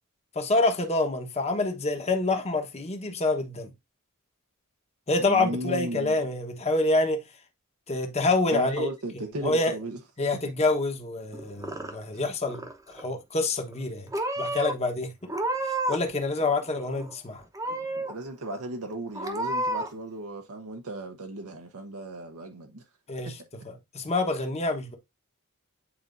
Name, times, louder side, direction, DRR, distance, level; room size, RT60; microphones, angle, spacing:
voice 1, 0.3-3.7 5.1-7.2 7.9-8.9 9.4-9.7 10.2-14.1 14.4-15.1 15.9-17.4 23.1-23.4 23.6-25.0, left 2 dB, 30° left, 1.1 m, -27 dB
voice 2, 5.2-6.2 8.5-10.0 18.1-22.8 23.2-23.3, right 1 dB, 75° right, 0.8 m, -35 dB
Purr / Meow, 11.3-12.2 12.5-13.1 13.7-13.9 14.1-14.7 15.3-16.1 16.4-17.1 17.5-18.1 18.6-18.7 19.2-19.9, right 1 dB, 15° right, 0.9 m, -31 dB
8.7 x 4.2 x 2.6 m
head